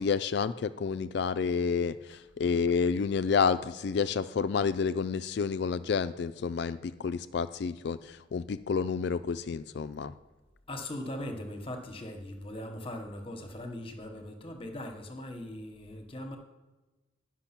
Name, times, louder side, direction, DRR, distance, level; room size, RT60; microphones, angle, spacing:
voice 1, 0.0-10.1, left 5 dB, 55° left, 14 dB, 0.3 m, -29 dB
voice 2, 10.7-16.4, left 1 dB, 25° left, 5 dB, 1.0 m, -40 dB
10.5 x 6.1 x 5.8 m, 1.2 s
head